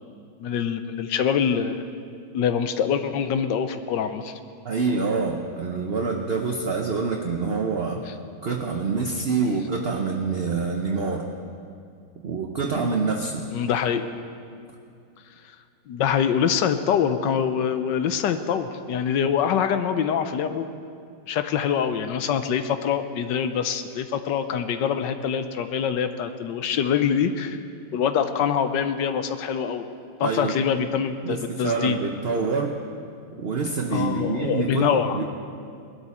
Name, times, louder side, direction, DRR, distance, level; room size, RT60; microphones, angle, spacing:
voice 1, 0.4-1.9 2.3-4.3 13.5-14.1 15.9-20.7 21.3-27.6 27.9-29.8 30.2-32.0 33.9-35.2, left 7 dB, 75° left, 9 dB, 1.3 m, -24 dB
voice 2, 4.6-8.0 8.4-11.3 12.2-13.5 30.2-30.6 31.2-32.8 33.3-35.2, right 4 dB, 50° right, 2 dB, 0.8 m, -26 dB
20.0 x 12.0 x 4.2 m, 2.4 s
omnidirectional pair, 2.0 m